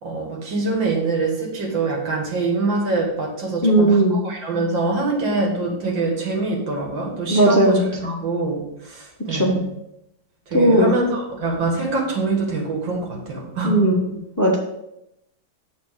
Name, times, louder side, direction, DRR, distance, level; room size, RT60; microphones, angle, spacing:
voice 1, 0.0-9.6 10.5-13.8, right 3 dB, 85° right, -1 dB, 2.6 m, -24 dB
voice 2, 3.6-4.2 7.3-8.2 9.3-9.6 10.5-10.9 13.6-13.9 14.4-14.6, right 1 dB, 15° left, -1 dB, 0.9 m, -17 dB
7.2 x 4.2 x 6.4 m, 0.83 s
omnidirectional pair, 2.0 m